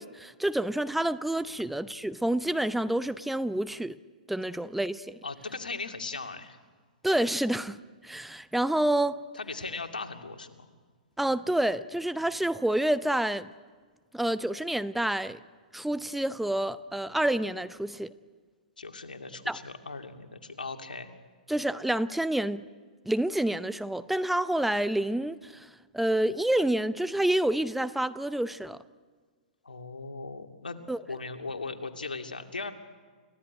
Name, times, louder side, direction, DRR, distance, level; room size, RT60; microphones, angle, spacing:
voice 1, 0.0-4.0 4.3-5.2 7.0-9.2 11.2-13.5 14.1-15.4 15.7-18.1 19.5-19.6 21.5-22.6 23.1-25.7 25.9-28.8 30.9-31.0, right 1 dB, 5° right, 0.7 m, -28 dB
voice 2, 5.2-6.6 9.3-10.7 18.8-21.1 29.6-30.8 31.1-32.7, left 3 dB, 85° left, 2.5 m, -38 dB
29.5 x 16.0 x 9.9 m
hypercardioid pair, 120°, 5 cm